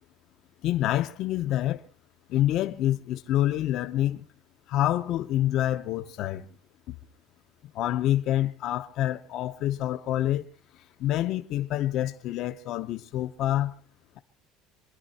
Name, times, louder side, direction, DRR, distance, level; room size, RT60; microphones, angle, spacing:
voice 1, 0.6-1.8 2.3-4.2 4.7-6.5 6.9-7.0 7.7-10.5 11.0-13.7, left 13 dB, 50° left, 0.8 m, -27 dB
27.0 x 11.0 x 4.3 m
cardioid pair, 155°, 0 cm